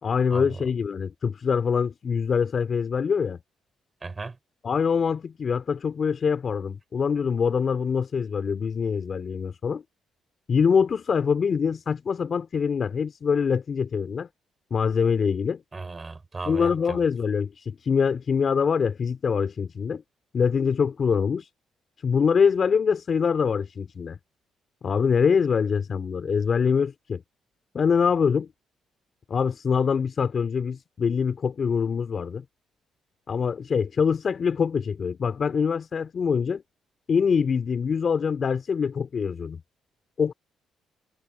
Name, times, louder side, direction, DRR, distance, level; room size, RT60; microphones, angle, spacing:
voice 1, 0.0-3.4 4.6-9.8 10.5-14.3 14.7-15.6 16.5-20.0 20.3-21.5 22.0-24.2 24.8-27.2 27.7-28.5 29.3-32.4 33.3-36.6 37.1-39.6 40.2-40.3, left 6 dB, 45° left, 4.0 m, -24 dB
voice 2, 4.0-4.4 15.7-17.0, right 3 dB, 25° right, 5.4 m, -35 dB
cardioid pair, 90°, 0 cm